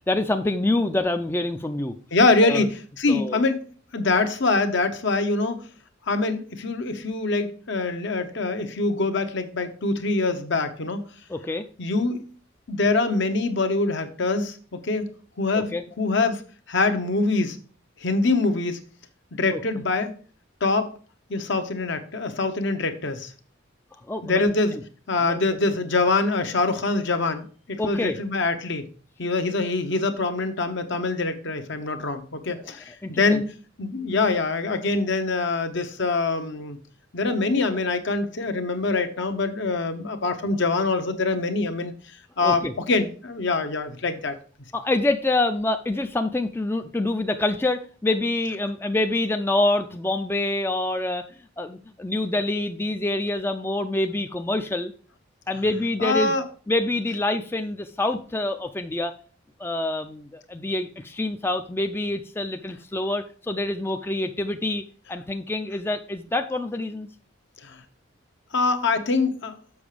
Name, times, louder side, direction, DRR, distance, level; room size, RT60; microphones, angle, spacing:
voice 1, 0.1-1.9 2.4-2.6 3.1-3.4 11.3-11.7 15.6-15.8 19.5-19.6 24.1-24.5 25.2-25.4 27.8-28.2 33.0-33.4 42.4-42.7 44.7-51.2 51.6-54.9 55.5-56.3 56.7-59.1 59.6-64.8 65.1-67.1, left 2 dB, 10° left, 7 dB, 0.4 m, -26 dB
voice 2, 2.1-3.6 3.9-5.7 6.1-11.0 11.8-12.2 12.7-15.1 15.4-16.4 16.7-17.6 18.0-18.8 19.3-20.1 20.6-20.9 21.3-23.3 24.2-24.8 25.1-28.9 29.2-36.8 37.1-41.9 42.4-44.4 56.0-56.4 67.6-67.8 68.5-69.5, left 3 dB, 60° left, 7 dB, 0.9 m, -24 dB
7.1 x 5.8 x 4.9 m, 0.41 s
head